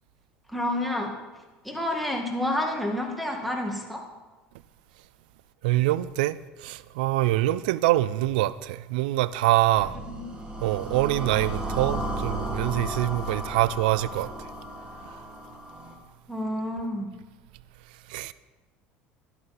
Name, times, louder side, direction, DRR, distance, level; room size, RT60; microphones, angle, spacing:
voice 1, 0.5-1.1 1.6-4.0 10.1-10.2 16.3-17.1, left 1 dB, ahead, 2.0 m, -29 dB
voice 2, 5.6-10.0 10.6-14.5 15.1-15.2 18.1-18.3, right 16 dB, 90° right, 0.3 m, -25 dB
sound 1, 9.8-15.9, right 1 dB, 20° right, 2.2 m, -34 dB
11.0 x 11.0 x 4.3 m
supercardioid pair, 110°, 5 cm